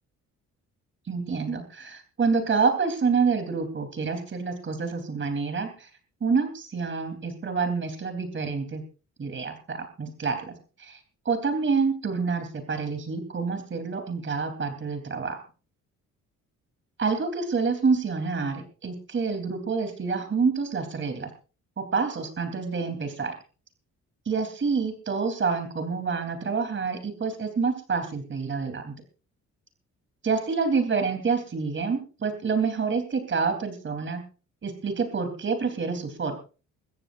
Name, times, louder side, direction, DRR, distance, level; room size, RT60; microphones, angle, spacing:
voice 1, 1.1-5.9 6.2-8.8 9.2-10.5 10.8-11.0 11.3-15.4 17.0-21.3 21.8-23.3 24.3-28.9 30.2-34.2 34.6-36.4, right 5 dB, 40° right, 6 dB, 3.5 m, -27 dB
22.5 x 14.5 x 2.6 m, 0.35 s
cardioid pair, 90°, 30 cm